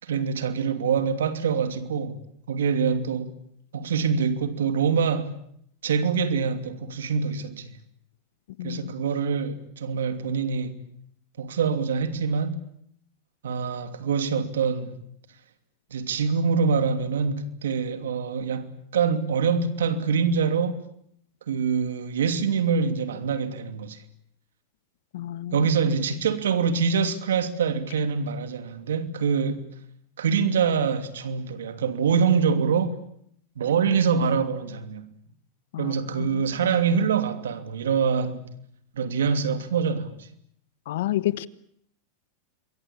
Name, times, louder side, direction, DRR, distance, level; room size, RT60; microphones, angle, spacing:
voice 1, 0.0-2.2 2.5-3.4 3.7-5.4 5.8-7.8 8.6-10.8 11.4-12.6 13.4-15.0 15.9-20.8 21.5-24.0 25.5-29.7 30.2-33.0 33.6-35.1 35.8-38.5 38.9-40.3, right 6 dB, 85° right, 2.8 m, -25 dB
voice 2, 8.6-8.9 25.1-25.6 35.7-36.4 40.9-41.5, left 14 dB, 75° left, 1.3 m, -30 dB
27.5 x 22.5 x 8.6 m
hypercardioid pair, 110°, 0 cm